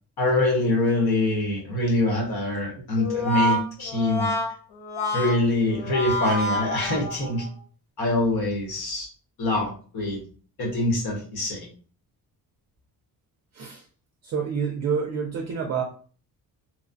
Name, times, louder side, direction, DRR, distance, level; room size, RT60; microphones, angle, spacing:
voice 1, 0.2-4.3 5.1-7.5 8.0-9.1 9.4-10.2 10.6-11.7, left 2 dB, 70° left, -1 dB, 1.3 m, -24 dB
Brass instrument, 3.0-7.5, equal, 85° left, 0.8 m, -27 dB
voice 2, 14.2-15.8, right 6 dB, 45° right, 3 dB, 0.4 m, -28 dB
3.0 x 2.1 x 2.6 m, 0.40 s
cardioid pair, 165°, 39 cm